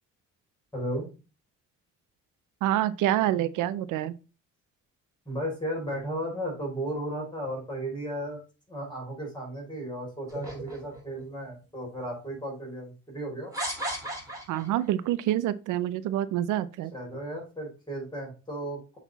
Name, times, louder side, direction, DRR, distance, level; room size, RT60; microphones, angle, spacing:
voice 1, 0.7-1.1 5.3-8.4 8.7-13.5 16.9-19.0, right 1 dB, 15° left, 4.2 m, -35 dB
voice 2, 2.6-4.2 14.5-16.9, right 13 dB, 90° right, 0.5 m, -27 dB
sound 1, 10.3-11.2 12.0-12.1 13.5-14.8, right 1 dB, 10° right, 3.3 m, -35 dB
7.3 x 4.1 x 4.0 m
cardioid pair, 90°, 30 cm